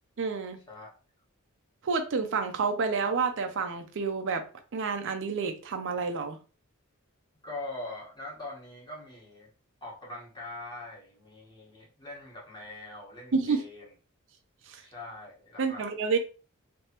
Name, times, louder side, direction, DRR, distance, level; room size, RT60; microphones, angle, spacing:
voice 1, 0.2-0.6 1.8-4.5 4.7-6.4 13.3-13.6 14.7-14.8 15.6-16.2, right 5 dB, 60° right, 0.5 m, -29 dB
voice 2, 7.4-9.5 9.8-13.9 14.8-15.8, left 2 dB, 20° left, 1.4 m, -42 dB
3.3 x 3.3 x 2.9 m
head